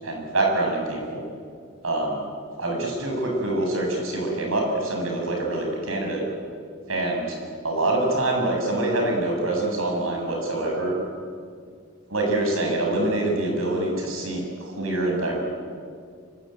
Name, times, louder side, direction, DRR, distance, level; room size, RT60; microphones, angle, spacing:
voice 1, 0.0-1.2 1.8-2.2 2.6-6.2 6.9-7.4 7.6-11.0 12.1-15.4, right 2 dB, 85° right, 1 dB, 7.4 m, -25 dB
25.5 x 24.0 x 9.3 m, 2.1 s
head